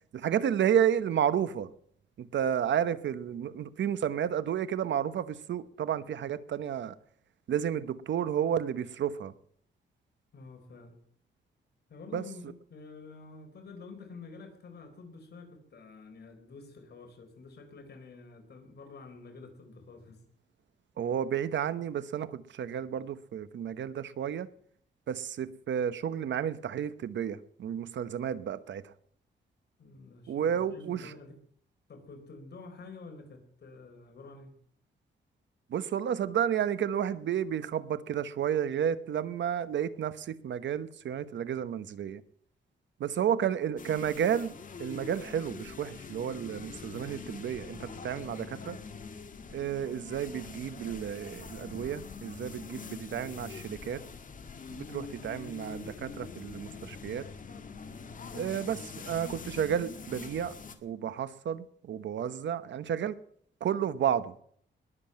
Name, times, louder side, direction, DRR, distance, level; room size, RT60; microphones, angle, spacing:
voice 1, 0.1-1.7 2.2-6.9 7.5-9.3 12.1-12.2 21.0-24.5 25.1-28.9 30.3-31.1 35.7-42.2 43.0-44.5 44.8-48.8 49.5-54.0 54.7-57.3 58.3-60.5 60.8-63.2 63.6-64.3, right 9 dB, 75° right, 1.0 m, -31 dB
voice 2, 10.3-11.0 11.9-20.2 29.8-31.3 31.9-34.6, left 4 dB, 60° left, 4.2 m, -49 dB
sound 1, 43.8-60.7, left 5 dB, 45° left, 1.9 m, -44 dB
21.0 x 7.7 x 8.6 m
wide cardioid pair, 120°, 19 cm